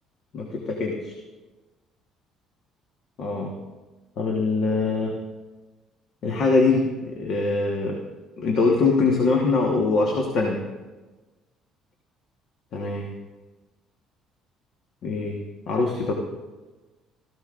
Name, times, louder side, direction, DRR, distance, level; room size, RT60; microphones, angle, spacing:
voice 1, 0.3-1.1 3.2-3.5 4.2-5.2 6.2-8.0 8.4-10.6 12.7-13.1 15.0-15.4 15.7-16.1, left 3 dB, 45° left, 0 dB, 1.2 m, -23 dB
17.0 x 14.0 x 2.5 m, 1.2 s
cardioid pair, 170°, 0 cm